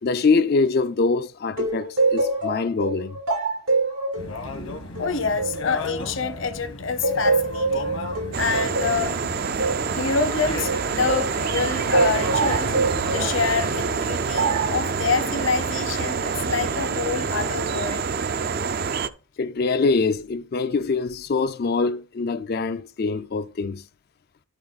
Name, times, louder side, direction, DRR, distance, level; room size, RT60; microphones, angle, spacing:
voice 1, 0.0-3.2 19.4-23.8, left 4 dB, 45° left, 0.4 m, -24 dB
sound 1, 1.6-6.6 7.0-11.4 11.9-13.4 14.3-14.8, right 3 dB, 85° right, 1.6 m, -25 dB
sound 2, 4.2-13.8, left 2 dB, 80° left, 1.6 m, -36 dB
voice 2, 5.0-8.0 8.4-9.2 9.9-12.8 13.1-18.1, left 4 dB, 65° left, 1.0 m, -26 dB
sound 3, 8.3-19.1, right 5 dB, 45° right, 0.4 m, -26 dB
12.0 x 4.3 x 4.0 m
head